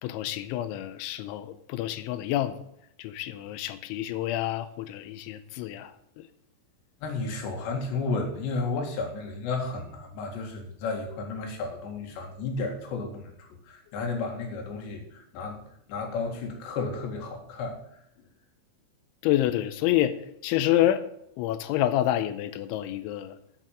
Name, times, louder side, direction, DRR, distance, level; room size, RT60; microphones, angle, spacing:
voice 1, 0.0-2.6 3.0-6.3 19.2-20.2 20.4-21.0 21.4-23.4, left 13 dB, 80° left, 2.8 m, -28 dB
voice 2, 7.0-15.6 15.9-17.8, left 3 dB, 65° left, 3.9 m, -33 dB
8.2 x 8.2 x 7.5 m
omnidirectional pair, 5.9 m